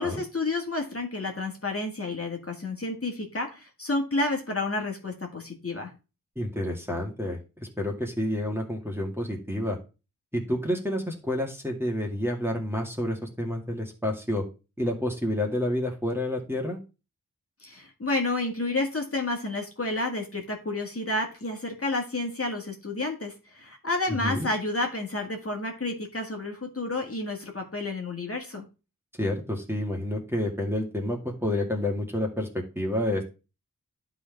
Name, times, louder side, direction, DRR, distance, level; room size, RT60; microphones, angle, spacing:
voice 1, 0.0-5.9 17.6-28.6, left 2 dB, 40° left, 2 dB, 1.9 m, -30 dB
voice 2, 6.4-9.8 10.3-14.5 14.8-16.8 24.2-24.5 29.2-33.2, left 1 dB, 5° right, 1 dB, 2.1 m, -29 dB
11.5 x 3.9 x 3.5 m, 0.30 s
wide cardioid pair, 50°, 34 cm